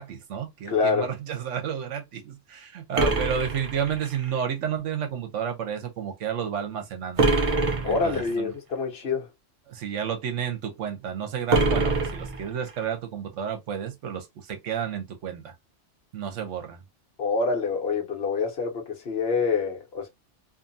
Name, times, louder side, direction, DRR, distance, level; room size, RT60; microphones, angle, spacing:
voice 1, 0.0-7.2 7.8-8.5 9.7-15.5 16.1-16.8, right 8 dB, 85° right, 1.1 m, -31 dB
voice 2, 0.7-1.1 7.8-9.3 17.2-20.1, left 4 dB, 60° left, 1.0 m, -26 dB
sound 1, 2.9-4.3 7.2-8.3 11.5-12.8, right 3 dB, 45° right, 0.4 m, -25 dB
2.6 x 2.6 x 2.5 m
omnidirectional pair, 1.2 m